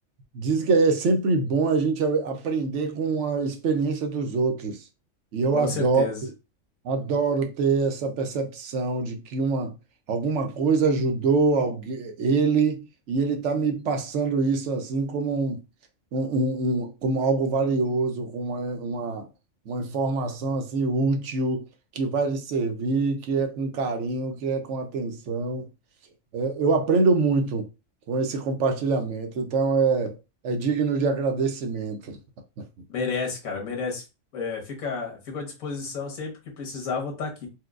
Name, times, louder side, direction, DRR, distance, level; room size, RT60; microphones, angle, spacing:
voice 1, 0.3-4.8 5.3-6.1 6.8-9.7 10.1-15.6 16.1-19.3 19.7-21.6 21.9-25.7 26.3-27.7 28.1-30.2 30.4-32.2, right 4 dB, 65° right, 0.9 m, -25 dB
voice 2, 5.5-6.2 32.9-34.0 34.3-37.5, left 5 dB, 85° left, 1.6 m, -31 dB
4.4 x 2.1 x 2.4 m
omnidirectional pair, 1.4 m